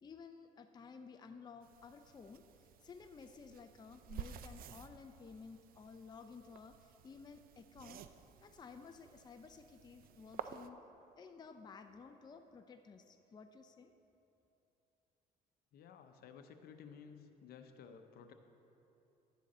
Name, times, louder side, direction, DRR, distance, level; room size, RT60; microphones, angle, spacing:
voice 1, 0.0-2.4 2.8-8.1 8.4-10.8 11.2-13.9, left 5 dB, 25° left, 6 dB, 0.5 m, -54 dB
sound 1, 1.6-10.7, right 9 dB, 60° right, 0.5 m, -53 dB
voice 2, 15.7-18.3, left 6 dB, 65° left, 7 dB, 0.8 m, -55 dB
11.5 x 9.2 x 4.2 m, 2.9 s
cardioid pair, 110°, 17 cm